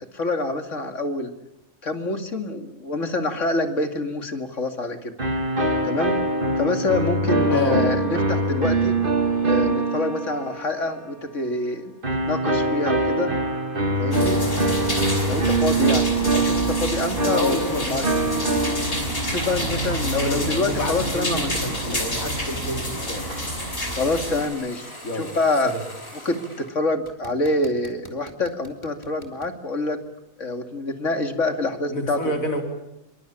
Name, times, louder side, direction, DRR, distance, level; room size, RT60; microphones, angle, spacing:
voice 1, 0.1-1.3 1.8-5.1 5.8-6.2 6.6-8.9 9.4-13.3 14.0-14.4 15.3-17.6 17.9-18.2 19.3-22.0 23.9-25.8 26.2-30.0 30.4-32.3, left 2 dB, 60° left, 7 dB, 2.7 m, -26 dB
sound 1, 5.2-11.0 12.0-19.4, right 2 dB, 40° right, 2.3 m, -23 dB
voice 2, 7.5-7.8 17.3-18.0 19.6-19.7 20.2-23.2 25.0-25.3 25.6-25.8 31.9-32.6, left 1 dB, 80° left, 4 dB, 4.4 m, -29 dB
sound 2, 14.1-24.5, equal, 45° left, 6.0 m, -28 dB
sound 3, 17.3-26.7 27.0-29.5, left 1 dB, 20° left, 3.4 m, -41 dB
27.0 x 24.0 x 8.8 m, 0.88 s
omnidirectional pair, 1.4 m